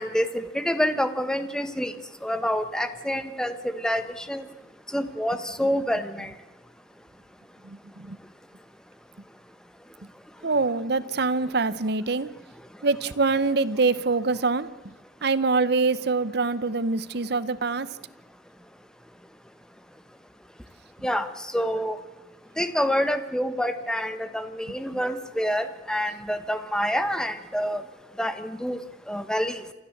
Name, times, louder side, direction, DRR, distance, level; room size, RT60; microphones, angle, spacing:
voice 1, 0.0-1.9 2.2-3.5 3.8-4.0 4.3-4.4 4.9-6.3 21.0-21.3 21.5-22.0 22.6-27.8 28.2-28.8 29.1-29.6, equal, 5° left, 10 dB, 1.1 m, -27 dB
voice 2, 7.6-8.2 10.4-12.3 12.8-14.7 15.2-17.9 24.7-24.8, right 3 dB, 60° right, 15 dB, 0.9 m, -24 dB
28.5 x 12.5 x 7.9 m, 1.2 s
head